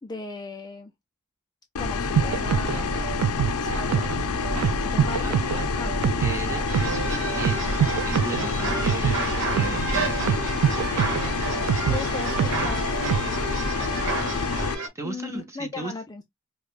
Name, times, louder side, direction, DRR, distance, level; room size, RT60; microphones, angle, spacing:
voice 1, 0.0-0.9 1.8-5.9 11.9-14.4 15.0-16.2, left 3 dB, 20° left, 0.3 m, -38 dB
sound 1, 1.8-14.8, left 5 dB, 75° left, 0.5 m, -28 dB
sound 2, 2.2-13.4, right 8 dB, 85° right, 0.3 m, -27 dB
voice 2, 6.0-10.7 14.9-15.9, right 2 dB, 15° right, 0.7 m, -36 dB
sound 3, 6.7-14.9, right 4 dB, 55° right, 1.1 m, -31 dB
4.9 x 2.2 x 2.4 m
head